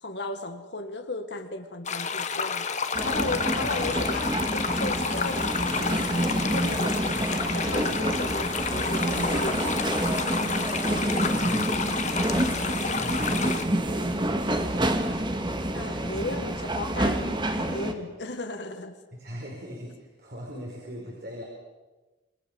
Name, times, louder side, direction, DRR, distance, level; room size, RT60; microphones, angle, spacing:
voice 1, 0.0-2.7 3.0-7.2 7.5-10.7 15.7-19.0, left 2 dB, 60° left, 7 dB, 1.6 m, -36 dB
sound 1, 1.8-13.6, left 5 dB, 40° left, 1.5 m, -30 dB
sound 2, 2.9-17.9, right 1 dB, 25° right, 2.0 m, -28 dB
voice 2, 11.1-11.8 12.8-14.5 19.1-21.4, equal, 55° right, -2 dB, 5.5 m, -41 dB
28.0 x 21.5 x 7.1 m, 1.2 s
head